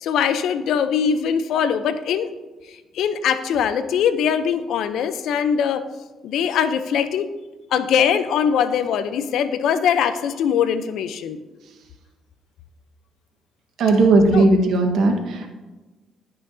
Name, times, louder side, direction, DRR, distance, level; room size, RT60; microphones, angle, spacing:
voice 1, 0.0-2.3 3.0-5.8 6.2-7.3 7.7-11.4 14.3-14.4, left 7 dB, 80° left, 11 dB, 0.6 m, -21 dB
voice 2, 13.8-15.1, right 2 dB, 75° right, 4 dB, 1.3 m, -16 dB
15.5 x 5.7 x 2.7 m, 1.2 s
cardioid pair, 90°, 0 cm